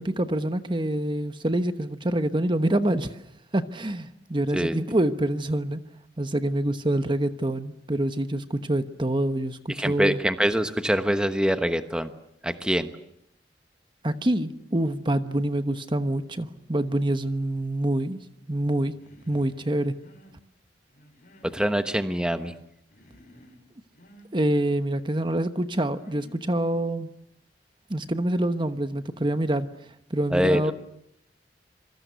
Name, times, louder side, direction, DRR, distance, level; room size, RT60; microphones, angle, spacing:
voice 1, 0.0-3.2 3.5-5.8 6.2-10.2 14.0-18.2 18.5-18.9 19.2-19.9 24.3-27.1 27.9-29.7 30.1-30.7, right 1 dB, 30° right, 10 dB, 1.1 m, -26 dB
voice 2, 9.7-12.1 12.4-12.9 21.4-22.5 30.3-30.7, equal, 5° right, 9 dB, 1.1 m, -24 dB
Human voice, 18.9-19.6 19.9-20.4 20.9-21.6 21.9-22.7 22.9-23.6 23.9-24.3 24.9-25.5 26.0-26.4, equal, 50° left, 6.7 m, -53 dB
26.5 x 24.0 x 8.2 m, 0.73 s
head